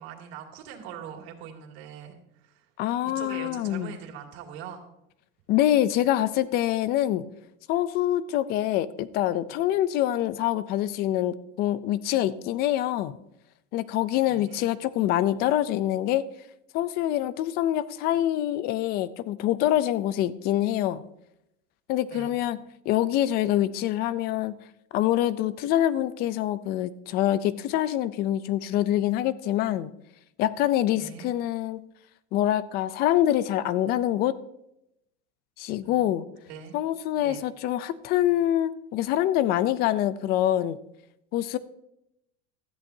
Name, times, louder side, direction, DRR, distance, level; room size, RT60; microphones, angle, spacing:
voice 1, 0.0-2.7 3.0-4.8 14.3-14.7 22.1-22.4 30.9-31.3 35.8-36.8 37.2-37.4, right 8 dB, 80° right, 2 dB, 2.5 m, -42 dB
voice 2, 2.8-3.9 5.5-7.2 7.7-13.1 13.7-16.2 16.7-21.0 21.9-22.6 22.9-24.6 24.9-29.9 30.4-31.8 32.3-34.3 35.6-36.3 36.7-40.8 41.3-41.6, left 13 dB, 30° left, 16 dB, 0.4 m, -25 dB
15.5 x 13.5 x 2.7 m, 0.82 s
cardioid pair, 180°, 31 cm